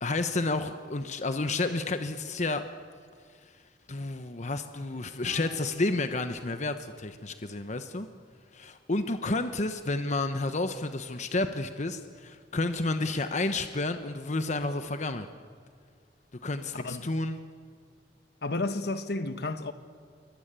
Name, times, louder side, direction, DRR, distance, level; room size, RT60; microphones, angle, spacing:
voice 1, 0.0-2.6 3.9-8.1 8.5-15.3 16.4-17.4, left 2 dB, 40° left, 1.1 m, -30 dB
sound 1, 5.2-8.2, left 1 dB, 80° left, 7.4 m, -51 dB
voice 2, 16.7-17.1 18.4-19.7, left 2 dB, 65° left, 1.3 m, -32 dB
27.5 x 23.5 x 9.0 m
head